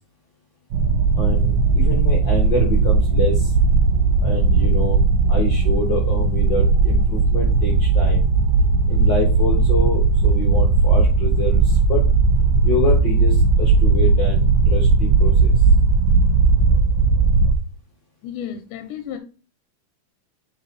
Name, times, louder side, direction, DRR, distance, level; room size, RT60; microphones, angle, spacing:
sound 1, 0.7-17.5, right 4 dB, 70° right, 1.8 m, -17 dB
voice 1, 1.2-3.5 4.2-5.0 5.3-8.2 8.9-12.0 12.6-15.5, left 3 dB, 60° left, 1.2 m, -26 dB
voice 2, 18.2-19.2, left 9 dB, 90° left, 2.3 m, -32 dB
8.1 x 4.0 x 4.1 m
omnidirectional pair, 3.7 m